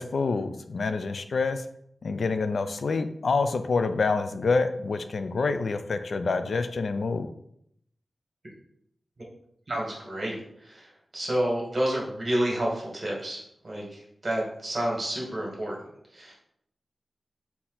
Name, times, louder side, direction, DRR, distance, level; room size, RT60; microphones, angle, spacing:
voice 1, 0.0-1.6 2.0-7.3, left 4 dB, 70° left, 9 dB, 0.3 m, -27 dB
voice 2, 9.7-10.3 10.6-10.9 11.1-13.8 14.2-15.8 16.1-16.4, right 1 dB, 40° right, -3 dB, 1.6 m, -29 dB
4.2 x 2.8 x 3.9 m, 0.72 s
wide cardioid pair, 100°, 0 cm